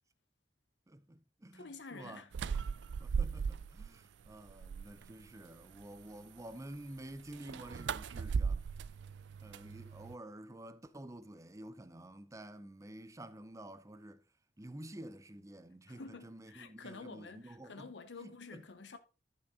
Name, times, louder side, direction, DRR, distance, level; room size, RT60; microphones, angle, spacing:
voice 1, 0.9-8.7 9.4-14.2 14.6-17.9 18.2-18.7, right 1 dB, 20° right, 0.6 m, -50 dB
voice 2, 1.5-2.3 15.9-19.0, left 4 dB, 75° left, 0.9 m, -49 dB
sound 1, 2.3-3.9 4.3-5.1 7.3-10.2, right 5 dB, 75° right, 0.4 m, -37 dB
11.0 x 6.1 x 3.7 m
head